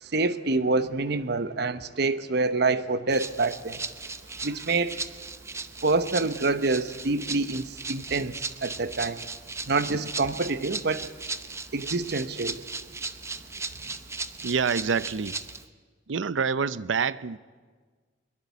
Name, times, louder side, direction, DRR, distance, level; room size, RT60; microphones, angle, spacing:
voice 1, 0.0-3.8 4.4-5.0 5.8-9.2 9.7-11.1 11.7-12.6, right 3 dB, 60° right, 1.0 m, -27 dB
Rattle (instrument), 3.1-15.6, right 4 dB, 15° right, 0.8 m, -37 dB
voice 2, 14.4-15.3 16.1-17.4, right 5 dB, 80° right, 0.6 m, -27 dB
22.5 x 22.0 x 8.3 m
head